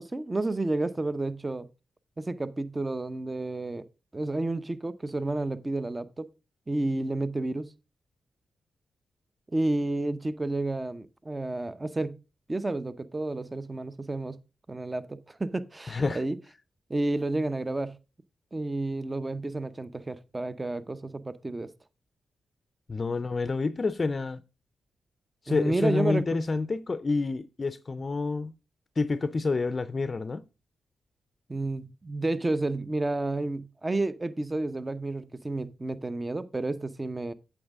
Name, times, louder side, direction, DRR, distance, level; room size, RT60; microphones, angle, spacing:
voice 1, 0.0-1.7 2.2-3.9 4.1-6.3 6.7-7.7 9.5-12.2 12.5-14.4 14.7-16.4 16.9-18.0 18.5-21.7 25.5-26.2 31.5-37.3, right 2 dB, 25° right, 0.7 m, -30 dB
voice 2, 15.9-16.2 22.9-24.4 25.4-28.5 29.0-30.4, left 3 dB, 40° left, 0.5 m, -28 dB
8.6 x 7.3 x 3.6 m
cardioid pair, 65°, 0 cm